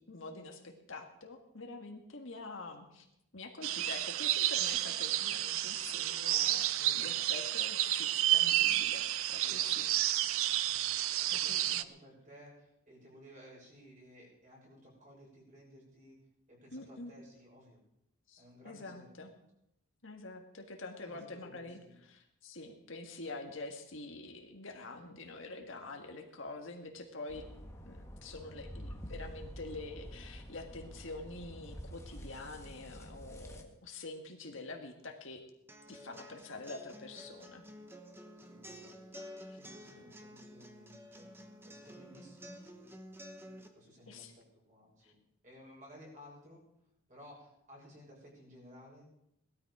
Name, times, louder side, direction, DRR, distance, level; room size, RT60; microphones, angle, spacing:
voice 1, 0.1-3.0 3.3-9.9 11.3-11.8 16.7-17.1 18.3-19.3 20.0-21.8 22.1-27.4 27.8-35.4 35.9-37.6 39.9-40.0 44.1-44.3 45.0-45.1, left 2 dB, 60° left, 3 dB, 1.8 m, -46 dB
sound 1, 3.6-11.8, right 13 dB, 70° right, 0.6 m, -31 dB
voice 2, 6.7-7.3 9.4-16.2 16.5-17.8 18.4-19.1 21.1-22.0 38.3-39.0 39.5-41.3 41.6-43.0 43.7-45.2 45.4-46.6 47.1-49.1, equal, 35° right, -3 dB, 6.6 m, -57 dB
sound 2, 27.3-33.6, equal, 15° left, 1.5 m, -48 dB
sound 3, 35.7-43.7, equal, 10° right, 1.1 m, -51 dB
18.5 x 13.0 x 4.9 m, 0.78 s
head